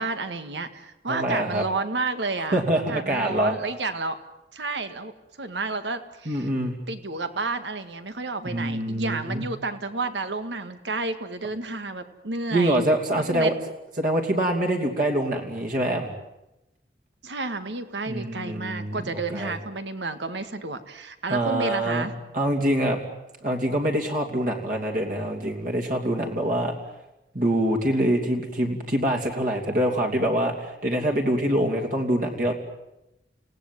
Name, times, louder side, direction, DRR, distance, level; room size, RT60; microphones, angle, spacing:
voice 1, 0.0-2.6 2.9-4.2 4.5-5.1 5.4-6.5 6.9-12.8 13.3-13.5 17.2-22.1, right 3 dB, 90° right, 9 dB, 1.9 m, -31 dB
voice 2, 1.1-1.6 2.5-3.5 6.3-6.8 8.4-9.4 12.5-13.5 14.0-16.1 18.1-19.6 21.3-22.1 22.3-23.0 23.4-26.8 27.3-32.5, right 1 dB, 50° right, 1 dB, 2.9 m, -25 dB
29.5 x 17.5 x 9.3 m, 0.94 s
head